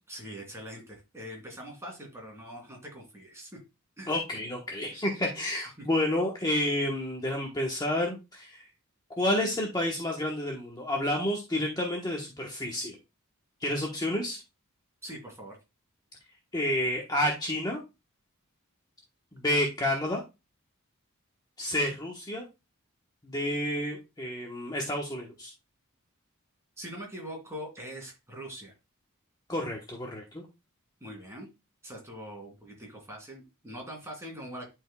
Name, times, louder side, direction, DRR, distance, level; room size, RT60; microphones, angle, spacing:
voice 1, 0.1-3.6 4.0-4.1 5.8-5.9 15.0-15.6 26.8-28.7 31.0-31.5 31.8-34.7, equal, 15° right, 0 dB, 3.0 m, -42 dB
voice 2, 4.1-8.6 9.2-13.0 13.6-14.4 16.5-17.8 19.3-20.2 21.6-22.4 23.2-25.5 29.5-30.4, left 1 dB, 20° left, 0 dB, 1.1 m, -30 dB
11.5 x 4.7 x 2.3 m, 0.25 s
head